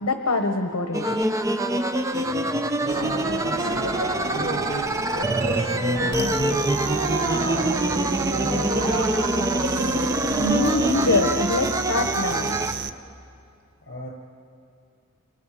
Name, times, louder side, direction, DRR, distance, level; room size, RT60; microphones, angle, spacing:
voice 1, 0.0-1.2 10.4-12.6, left 2 dB, 70° left, 5 dB, 1.2 m, -24 dB
sound 1, 0.9-12.7, right 1 dB, 15° right, 0.6 m, -25 dB
voice 2, 1.9-4.0 4.3-7.0 7.3-9.7 13.8-14.1, equal, 55° left, -2 dB, 8.0 m, -38 dB
sound 2, 2.9-11.2, right 2 dB, 70° right, 1.5 m, -31 dB
sound 3, 6.1-12.9, right 5 dB, 50° right, 0.7 m, -32 dB
29.5 x 28.5 x 5.0 m, 2.6 s
head